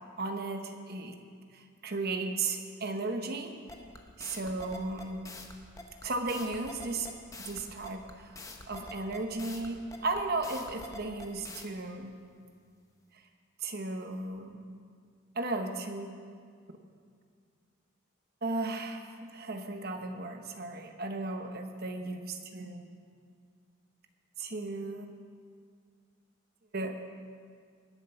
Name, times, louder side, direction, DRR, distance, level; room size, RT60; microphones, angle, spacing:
voice 1, 0.2-1.2 1.5-3.5 4.2-5.2 6.0-7.1 7.4-8.4 8.7-12.1 13.6-14.6 15.3-16.2 18.4-22.9 24.4-25.1 26.7-27.0, right 2 dB, 45° right, 5 dB, 1.0 m, -35 dB
sound 1, 3.7-11.7, left 2 dB, 15° left, 0.9 m, -45 dB
20.0 x 7.6 x 5.7 m, 2.1 s
head